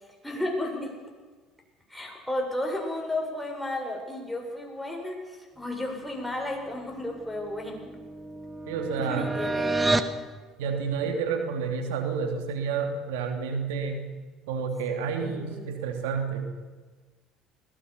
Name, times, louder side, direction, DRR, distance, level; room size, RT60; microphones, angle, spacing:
voice 1, 0.2-0.9 1.9-8.0 9.0-10.2 15.2-15.7, left 1 dB, 5° left, 0 dB, 7.6 m, -33 dB
sound 1, 7.0-10.2, right 2 dB, 15° right, 1.8 m, -30 dB
voice 2, 8.7-9.3 10.6-14.1 14.5-16.5, right 5 dB, 85° right, 5 dB, 2.8 m, -30 dB
21.0 x 19.5 x 6.9 m, 1.4 s
supercardioid pair, 75°, 0 cm